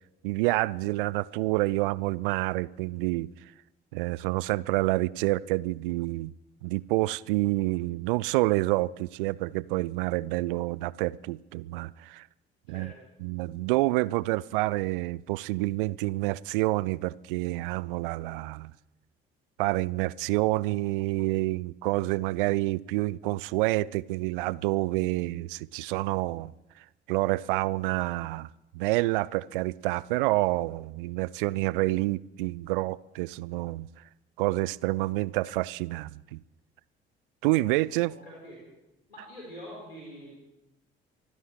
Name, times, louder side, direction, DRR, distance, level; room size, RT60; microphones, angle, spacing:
voice 1, 0.2-3.3 3.9-6.3 6.6-12.3 12.7-12.9 13.2-18.7 19.6-26.5 27.1-28.5 28.7-33.9 34.4-36.4 37.4-38.1, right 20 dB, 65° right, 0.4 m, -28 dB
voice 2, 38.1-38.6 39.1-40.5, equal, 85° left, 4.2 m, -45 dB
24.5 x 16.0 x 3.2 m
figure-of-eight pair, 50°, 29 cm